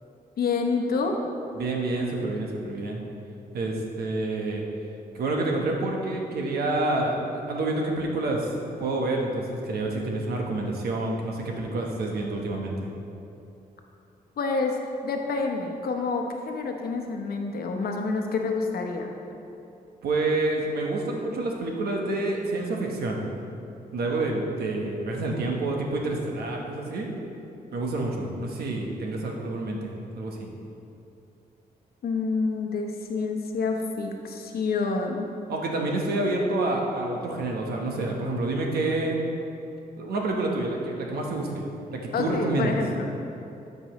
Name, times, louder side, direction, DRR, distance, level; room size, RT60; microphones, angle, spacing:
voice 1, 0.4-1.1 14.4-14.8 15.0-19.1 32.0-35.3 42.1-43.1, left 4 dB, 80° left, 3 dB, 0.9 m, -28 dB
voice 2, 1.5-3.0 3.5-4.6 5.1-7.1 7.5-8.5 8.8-12.9 20.0-23.2 23.9-27.1 27.7-30.5 35.5-39.2 40.0-41.6 41.9-42.8, right 2 dB, 90° right, 0 dB, 1.1 m, -28 dB
13.0 x 5.4 x 3.1 m, 2.8 s
cardioid pair, 90°, 16 cm